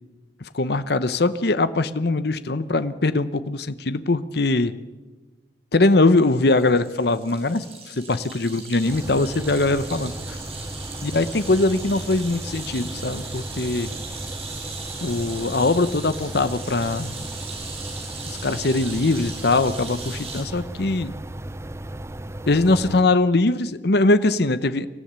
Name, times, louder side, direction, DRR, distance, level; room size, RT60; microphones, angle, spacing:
voice 1, 0.5-4.7 5.7-10.4 11.0-13.9 15.0-17.1 18.3-21.1 22.5-24.9, left 2 dB, 60° left, 14 dB, 0.9 m, -21 dB
sound 1, 6.2-20.4, right 4 dB, 35° right, 6.4 m, -38 dB
sound 2, 8.8-23.0, right 1 dB, 15° right, 0.6 m, -36 dB
24.5 x 14.5 x 8.9 m, 1.2 s
head